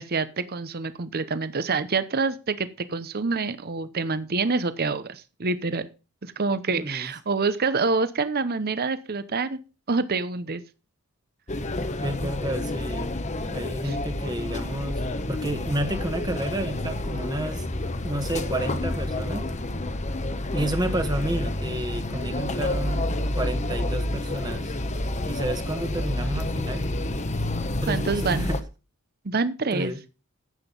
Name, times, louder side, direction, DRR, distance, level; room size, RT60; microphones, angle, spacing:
voice 1, 0.0-5.9 6.2-9.6 9.9-10.6 13.8-14.0 27.9-28.5 29.2-29.9, right 4 dB, 45° right, 13 dB, 0.8 m, -27 dB
voice 2, 6.8-7.1 12.0-13.1 13.4-17.7 18.0-19.5 20.5-23.1 23.3-24.7 25.2-26.8 27.8-28.6 29.7-30.0, right 1 dB, 20° right, 7 dB, 1.2 m, -30 dB
sound 1, 11.5-28.6, left 1 dB, 30° left, 0.9 m, -29 dB
sound 2, 11.8-24.5, equal, 90° left, 5.7 m, -49 dB
11.0 x 8.1 x 5.3 m, 0.32 s
head